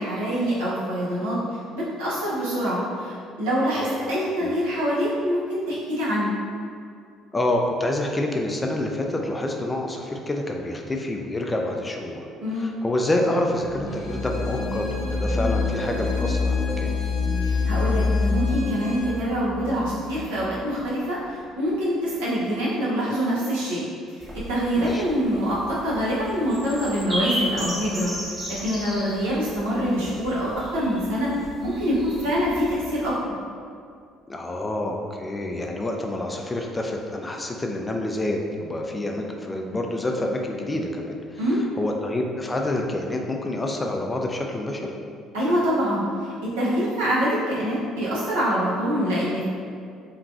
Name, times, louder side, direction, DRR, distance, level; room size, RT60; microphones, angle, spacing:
voice 1, 0.0-1.4 1.7-6.3 12.4-12.7 17.4-23.8 24.1-28.1 28.6-31.3 31.6-33.1 41.4-41.6 45.3-49.4, equal, 90° right, -8 dB, 0.8 m, -25 dB
voice 2, 7.3-12.2 12.5-16.9 24.8-25.0 32.2-32.3 34.3-44.9, left 1 dB, 20° left, 2 dB, 0.4 m, -27 dB
sound 1, 13.6-20.7, left 4 dB, 40° right, 0.6 m, -26 dB
Bowed string instrument, 13.9-19.2, left 3 dB, 75° left, 0.5 m, -41 dB
sound 2, 24.2-33.1, equal, 15° right, 1.0 m, -35 dB
3.0 x 2.4 x 2.5 m, 2.3 s
hypercardioid pair, 65°, 0 cm